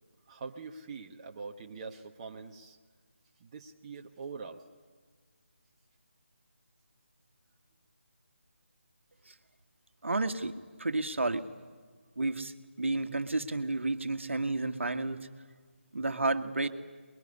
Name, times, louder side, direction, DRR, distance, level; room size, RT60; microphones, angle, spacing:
voice 1, 0.3-2.8 3.4-4.6, right 4 dB, 30° right, 2 dB, 1.2 m, -43 dB
voice 2, 10.0-10.5 10.8-11.4 12.2-12.5 12.8-15.3 15.9-16.7, right 2 dB, 75° right, 8 dB, 1.6 m, -31 dB
25.0 x 21.5 x 9.7 m, 1.5 s
figure-of-eight pair, 160°, 7 cm